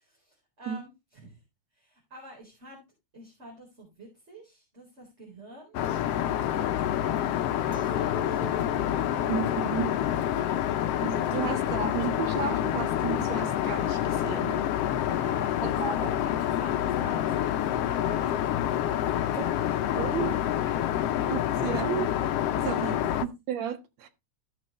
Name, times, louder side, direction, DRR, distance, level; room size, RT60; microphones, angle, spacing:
voice 1, 0.0-1.4 1.7-2.8 3.1-5.8 6.4-8.8 10.3-10.9 15.0-21.0 21.7-21.8 22.9-23.2, right 1 dB, 20° right, 4.5 m, -48 dB
Aircraft, 5.7-23.3, left 11 dB, 70° left, 1.6 m, -27 dB
Chink clink, 7.7-13.2, left 2 dB, 35° left, 1.5 m, -43 dB
voice 2, 9.3-9.9 11.0-14.7 15.6-16.2 19.9-20.3 21.3-22.1 22.6-23.0 23.2-24.1, right 9 dB, 65° right, 2.7 m, -33 dB
16.0 x 6.4 x 3.1 m
omnidirectional pair, 3.3 m